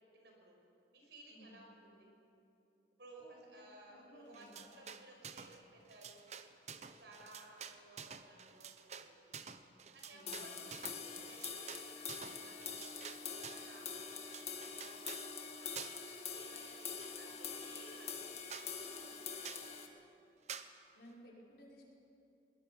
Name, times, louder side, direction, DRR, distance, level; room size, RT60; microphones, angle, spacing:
voice 1, 0.1-0.5 0.9-2.1 3.0-6.2 6.7-9.3 9.9-10.6 10.9-15.0 15.6-15.9 16.3-20.4, right 1 dB, 70° right, 0 dB, 5.6 m, -59 dB
voice 2, 3.2-4.6 10.1-10.6 21.0-21.8, equal, 65° left, -4 dB, 5.3 m, -58 dB
sound 1, 4.3-5.6 5.9-13.7 14.1-15.3 15.7-16.1 16.4-17.4 17.8-17.9 18.2-18.3 18.5-18.7 19.4-19.7 20.5-20.7, right 7 dB, 40° right, 0.8 m, -50 dB
sound 2, 10.3-19.9, left 6 dB, 35° left, 1.9 m, -45 dB
21.5 x 19.5 x 7.1 m, 2.7 s
head